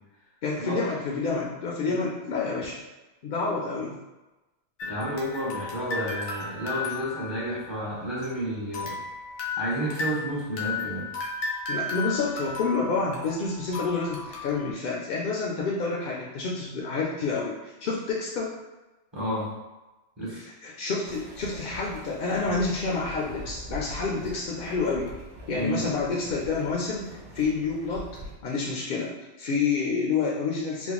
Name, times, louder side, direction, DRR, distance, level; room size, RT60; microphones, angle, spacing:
voice 1, 0.4-2.8 3.2-4.0 11.7-18.6 20.3-25.1 25.5-28.1 28.4-29.1 29.4-30.9, left 4 dB, 60° left, -3 dB, 0.6 m, -28 dB
sound 1, 4.8-8.3 8.7-14.7, left 4 dB, 90° left, 1.0 m, -35 dB
voice 2, 4.9-9.0 9.6-11.1 19.1-19.6 20.2-20.4 25.5-25.9, right 1 dB, 30° right, -7 dB, 0.6 m, -31 dB
sound 2, 21.0-28.4, equal, 85° right, 1.1 m, -43 dB
3.7 x 2.2 x 2.9 m, 1.1 s
omnidirectional pair, 1.2 m